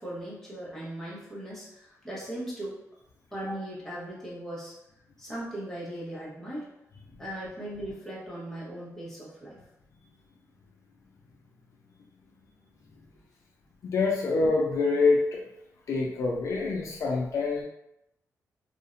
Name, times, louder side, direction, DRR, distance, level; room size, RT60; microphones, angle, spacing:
voice 1, 0.0-2.8 3.3-4.7 5.2-6.6 7.2-9.6, right 1 dB, 5° left, -7 dB, 0.8 m, -38 dB
voice 2, 13.8-15.4 15.9-17.6, left 3 dB, 60° left, -1 dB, 0.3 m, -25 dB
2.5 x 2.1 x 2.4 m, 0.85 s
wide cardioid pair, 140°, 6 cm